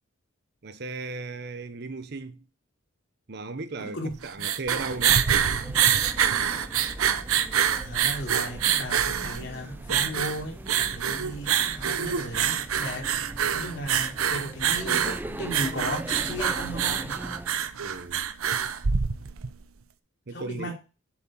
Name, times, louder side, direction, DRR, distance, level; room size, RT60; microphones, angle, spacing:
voice 1, 0.6-2.4 3.3-4.0 4.2-5.2 13.0-13.1 17.8-18.2 20.3-20.7, right 3 dB, 50° right, 0.7 m, -36 dB
voice 2, 3.8-4.5 7.8-13.1 13.5-17.2 20.3-20.7, equal, 55° left, 3.3 m, -36 dB
sound 1, 4.1-19.6, right 8 dB, 85° right, 0.8 m, -26 dB
sound 2, 4.7-17.6, right 1 dB, 10° right, 0.3 m, -40 dB
7.6 x 7.4 x 4.4 m
head